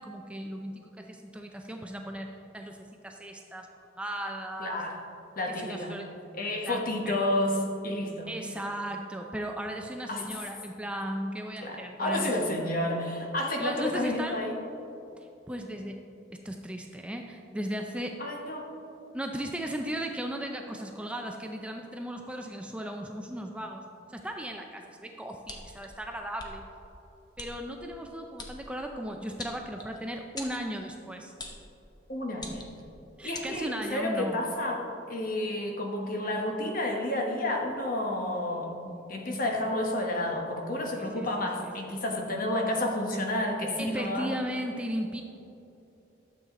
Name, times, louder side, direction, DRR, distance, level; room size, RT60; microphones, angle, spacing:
voice 1, 0.0-3.7 4.0-4.8 5.6-6.1 6.6-7.5 8.3-12.3 13.6-14.4 15.5-16.0 16.3-18.1 19.1-23.8 24.1-26.7 27.4-31.3 33.2-34.4 38.6-39.0 41.0-41.7 43.8-45.2, equal, 5° right, 3 dB, 0.4 m, -36 dB
voice 2, 4.6-5.0 5.4-6.0 6.3-8.3 10.1-10.2 11.6-14.6 18.2-18.7 32.1-32.6 33.2-38.7 39.1-44.3, left 1 dB, 50° left, 1 dB, 1.2 m, -30 dB
sound 1, 25.4-25.9 26.4-26.5 27.4-27.5 28.4-28.5 29.4-30.0 30.4-30.6 31.4-31.6 32.3-32.8 33.3-33.5, left 3 dB, 20° left, 0.9 m, -41 dB
12.0 x 7.4 x 3.7 m, 2.9 s
head